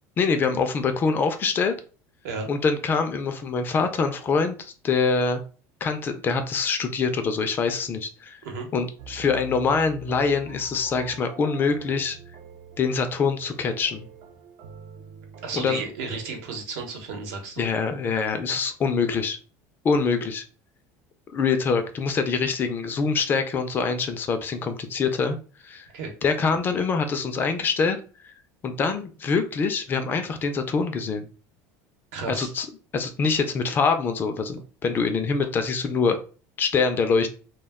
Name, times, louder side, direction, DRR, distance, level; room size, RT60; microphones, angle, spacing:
voice 1, 0.2-1.7 2.5-5.4 5.8-8.4 8.7-12.2 12.8-14.1 15.5-15.8 17.6-19.4 19.8-20.4 21.3-25.4 25.6-25.9 26.2-28.0 28.2-28.3 28.6-31.3 32.3-32.7 32.9-36.2 36.6-37.3, left 5 dB, 25° left, 7 dB, 0.3 m, -24 dB
sound 1, 9.0-16.6, right 7 dB, 65° right, 0.5 m, -46 dB
voice 2, 15.4-17.6 25.9-26.1 32.1-32.5, right 4 dB, 80° right, 3 dB, 0.9 m, -33 dB
2.2 x 2.1 x 3.4 m, 0.37 s
cardioid pair, 150°, 8 cm